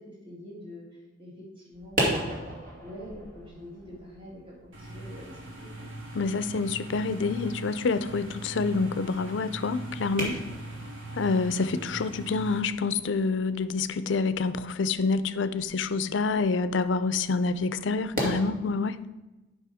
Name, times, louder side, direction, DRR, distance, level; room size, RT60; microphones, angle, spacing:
voice 1, 0.0-2.5 2.8-5.9, equal, 25° right, -4 dB, 2.3 m, -45 dB
sound 1, 1.7-18.4, right 1 dB, 45° right, 2.2 m, -38 dB
sound 2, 4.7-12.6, right 1 dB, 85° right, 1.8 m, -41 dB
voice 2, 6.1-10.4 11.2-19.0, left 4 dB, 65° left, 13 dB, 0.5 m, -27 dB
9.6 x 5.7 x 4.9 m, 1.1 s
head